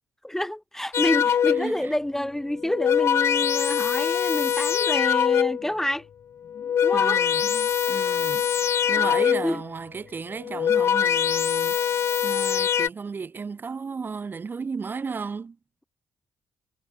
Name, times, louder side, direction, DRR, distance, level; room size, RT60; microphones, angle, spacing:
voice 1, 0.2-6.0 6.8-7.2 9.0-9.1 9.4-9.6, left 1 dB, 5° left, 0.7 m, -28 dB
sound 1, 0.9-1.8 2.6-5.7 6.5-9.6 10.4-12.9, left 8 dB, 55° left, 0.5 m, -23 dB
voice 2, 1.5-1.9 6.9-8.5 8.9-15.6, right 5 dB, 40° right, 1.4 m, -35 dB
supercardioid pair, 55°, 5 cm